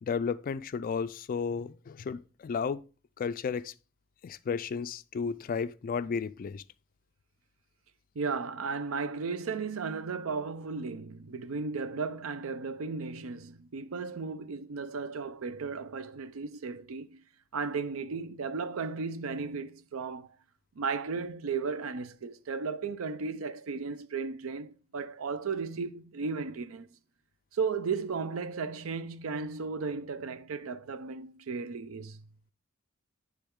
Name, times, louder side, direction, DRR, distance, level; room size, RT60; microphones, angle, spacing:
voice 1, 0.0-2.8 3.2-3.7 4.2-6.6, left 5 dB, 45° left, 0.3 m, -33 dB
voice 2, 8.2-17.2 17.5-20.3 20.8-26.9 27.5-32.2, right 5 dB, 85° right, 0.5 m, -35 dB
9.9 x 3.5 x 3.6 m
head